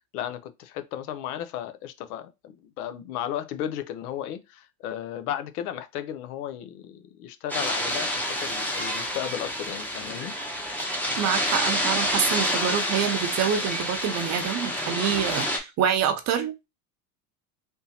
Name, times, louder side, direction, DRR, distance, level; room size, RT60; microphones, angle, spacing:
voice 1, 0.1-10.3, left 10 dB, 70° left, 0.7 m, -34 dB
sound 1, 7.5-15.6, equal, 5° left, 0.7 m, -28 dB
voice 2, 11.2-16.7, right 8 dB, 35° right, 0.7 m, -26 dB
3.6 x 2.7 x 2.8 m
hypercardioid pair, 105°, 47 cm